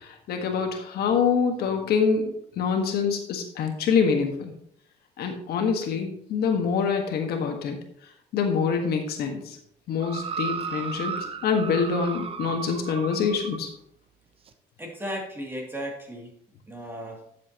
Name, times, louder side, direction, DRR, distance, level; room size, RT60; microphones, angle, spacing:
voice 1, 0.0-4.5 5.2-7.8 8.3-9.6 9.9-11.1 11.4-13.7, left 6 dB, 70° left, 4 dB, 1.5 m, -25 dB
sound 1, 10.0-13.7 14.5-14.6, right 6 dB, 35° right, 0.9 m, -34 dB
voice 2, 14.8-16.3 16.7-17.2, equal, 15° right, 0 dB, 2.7 m, -35 dB
11.0 x 7.5 x 3.0 m, 0.68 s
cardioid pair, 110°, 17 cm